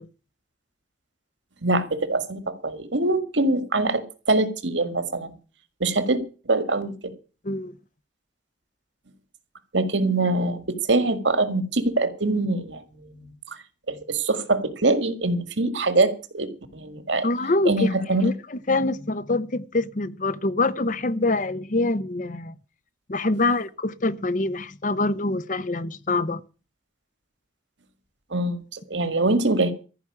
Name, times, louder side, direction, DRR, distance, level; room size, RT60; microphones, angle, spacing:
voice 1, 1.6-5.3 5.8-6.2 6.5-6.9 9.7-13.3 13.9-17.3 17.7-18.3 28.3-29.7, right 2 dB, 80° right, 1.9 m, -24 dB
voice 2, 17.2-22.5 23.1-26.4, left 2 dB, 45° left, 0.8 m, -25 dB
14.5 x 5.9 x 9.9 m
head